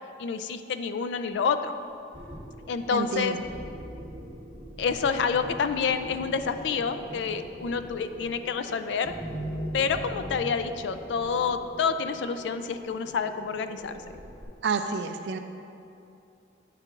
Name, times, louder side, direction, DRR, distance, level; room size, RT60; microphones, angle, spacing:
voice 1, 0.2-1.7 2.7-3.4 4.8-9.1 9.7-14.0, left 5 dB, 75° left, 10 dB, 0.3 m, -28 dB
sound 1, 2.1-14.5, equal, 35° right, 1.4 m, -41 dB
voice 2, 2.9-3.4 14.6-15.4, right 5 dB, 65° right, 8 dB, 0.3 m, -29 dB
8.4 x 6.5 x 2.5 m, 2.6 s
head